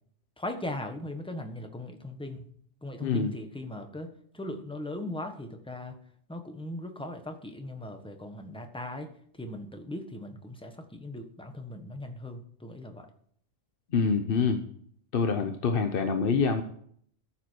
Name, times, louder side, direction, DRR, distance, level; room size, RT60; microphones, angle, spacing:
voice 1, 0.4-2.5 2.8-6.0 6.3-9.1 9.3-13.1, left 1 dB, 5° left, 6 dB, 1.1 m, -39 dB
voice 2, 13.9-14.6 15.1-16.6, left 5 dB, 50° left, 7 dB, 0.9 m, -26 dB
13.5 x 7.2 x 4.6 m, 0.62 s
omnidirectional pair, 1.3 m